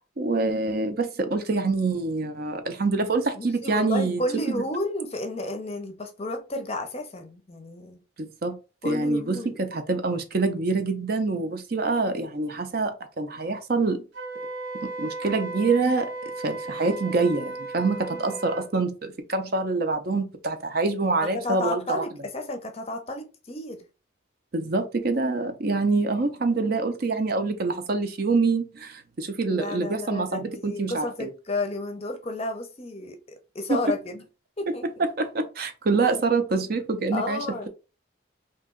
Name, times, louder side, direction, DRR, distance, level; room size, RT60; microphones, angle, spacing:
voice 1, 0.2-4.2 4.5-4.6 8.2-8.6 8.8-14.0 15.0-22.0 24.5-31.3 33.7-33.8 34.7-34.8 35.0-37.7, right 3 dB, 50° right, 0.5 m, -26 dB
voice 2, 3.4-8.0 8.8-9.6 18.1-18.4 21.2-23.8 29.5-34.2 34.6-35.0 37.1-37.7, left 1 dB, 30° left, 0.6 m, -32 dB
Wind instrument woodwind instrument, 14.1-18.7, right 2 dB, 85° right, 1.2 m, -35 dB
2.9 x 2.7 x 3.6 m
head